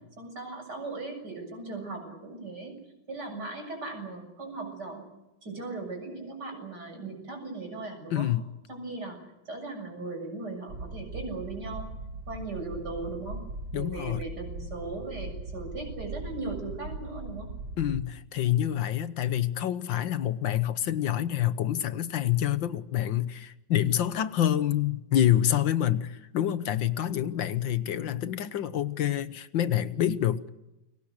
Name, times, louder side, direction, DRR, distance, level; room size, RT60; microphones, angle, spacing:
voice 1, 0.2-2.7 3.1-5.1 5.4-8.3 8.7-11.9 12.3-13.4 13.7-17.5, right 3 dB, 55° right, 4 dB, 7.7 m, -38 dB
voice 2, 8.1-8.5 13.7-14.2 17.8-30.5, left 11 dB, 75° left, 14 dB, 1.8 m, -27 dB
sound 1, 10.7-18.1, right 2 dB, 75° right, 3.0 m, -39 dB
30.0 x 23.5 x 6.6 m, 0.96 s
omnidirectional pair, 2.1 m